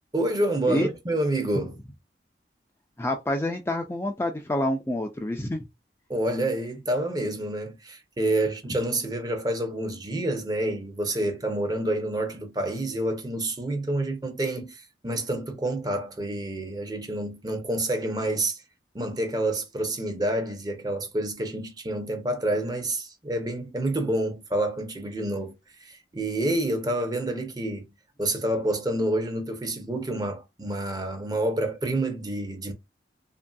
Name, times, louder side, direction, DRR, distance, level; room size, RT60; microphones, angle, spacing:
voice 1, 0.1-1.8 6.1-18.6 18.9-25.5 25.8-27.8 28.2-32.7, right 1 dB, 20° right, 0.6 m, -28 dB
voice 2, 3.0-5.6, left 1 dB, 15° left, 0.3 m, -27 dB
2.9 x 2.6 x 2.3 m
head